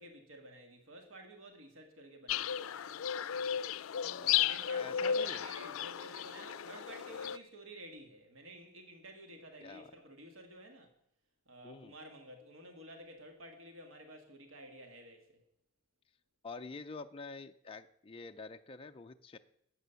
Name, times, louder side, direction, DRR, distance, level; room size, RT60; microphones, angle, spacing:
voice 1, 0.0-3.0 4.2-10.9 11.5-15.4, right 1 dB, 70° right, 4 dB, 1.8 m, -52 dB
sound 1, 2.3-7.4, left 9 dB, 80° left, 0.5 m, -34 dB
voice 2, 4.0-4.4 4.7-5.4 9.6-9.9 11.6-11.9 16.4-19.4, left 4 dB, 25° left, 5 dB, 0.5 m, -47 dB
12.5 x 8.2 x 6.9 m, 0.75 s
head